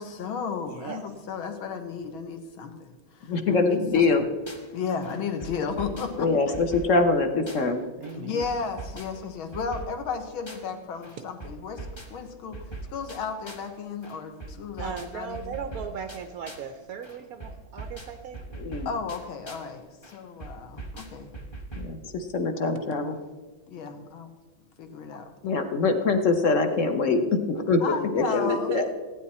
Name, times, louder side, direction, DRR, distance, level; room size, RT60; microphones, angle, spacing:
voice 1, 0.0-4.1 4.7-6.5 8.1-12.6 12.9-15.5 18.9-19.9 20.1-21.3 23.7-24.3 24.8-25.3 27.8-28.7, left 5 dB, 75° left, 6 dB, 2.0 m, -34 dB
voice 2, 0.7-1.0 8.0-8.5 11.2-11.3 14.8-18.4 28.2-28.9, right 7 dB, 70° right, 8 dB, 0.8 m, -37 dB
voice 3, 3.3-4.2 6.2-7.9 18.6-18.9 21.8-23.2 25.4-28.8, left 3 dB, 55° left, 7 dB, 0.9 m, -24 dB
sound 1, 4.5-4.7 5.0-7.8 8.0-10.8 11.0-13.8 14.0-16.8 17.0-19.8 20.0-22.0, right 2 dB, 20° left, 0.8 m, -41 dB
15.5 x 9.6 x 4.2 m, 1.3 s
omnidirectional pair, 2.3 m